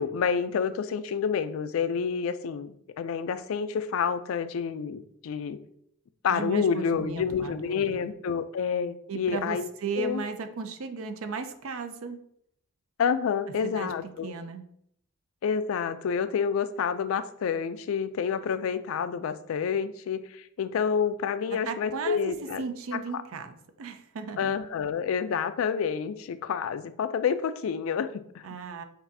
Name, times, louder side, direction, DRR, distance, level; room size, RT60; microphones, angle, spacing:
voice 1, 0.0-5.6 6.2-9.7 10.0-10.2 13.0-14.3 15.4-22.6 23.1-23.2 24.4-28.5, left 6 dB, 70° left, 12 dB, 0.3 m, -28 dB
voice 2, 6.3-8.0 9.1-12.2 13.6-13.9 14.2-14.6 21.7-24.5 28.4-28.8, right 5 dB, 75° right, 8 dB, 0.5 m, -35 dB
6.0 x 2.6 x 2.6 m, 0.70 s
head